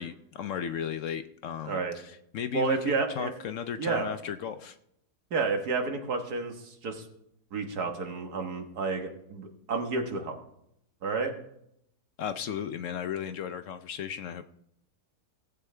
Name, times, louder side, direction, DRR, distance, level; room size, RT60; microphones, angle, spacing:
voice 1, 0.0-4.8 12.2-14.5, left 8 dB, 65° left, 10 dB, 0.8 m, -35 dB
voice 2, 2.5-3.3 3.8-4.1 5.3-7.1 7.5-10.3 11.0-11.3, right 4 dB, 80° right, 4 dB, 1.9 m, -30 dB
17.5 x 8.1 x 3.3 m, 0.75 s
omnidirectional pair, 1.6 m